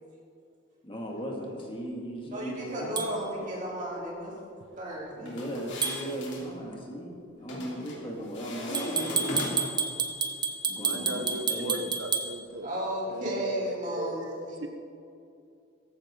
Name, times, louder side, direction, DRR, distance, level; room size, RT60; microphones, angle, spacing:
voice 1, 0.8-3.0 5.2-9.6 10.7-11.2 11.5-11.9, equal, 25° left, -1 dB, 2.2 m, -37 dB
voice 2, 2.3-4.4 4.8-5.4 10.1-10.3 11.2-11.3 11.6-11.8 12.6-14.7, right 1 dB, 40° right, -5 dB, 3.6 m, -34 dB
sound 1, 3.0-3.1 5.8-6.0 8.7-12.3, right 5 dB, 20° right, 1.1 m, -29 dB
sound 2, 5.3-6.4 7.5-8.0 8.3-9.8, left 1 dB, 65° left, 3.1 m, -37 dB
voice 3, 10.8-14.2 14.6-14.7, right 1 dB, 75° right, 6 dB, 0.8 m, -37 dB
17.5 x 15.0 x 3.8 m, 2.6 s
head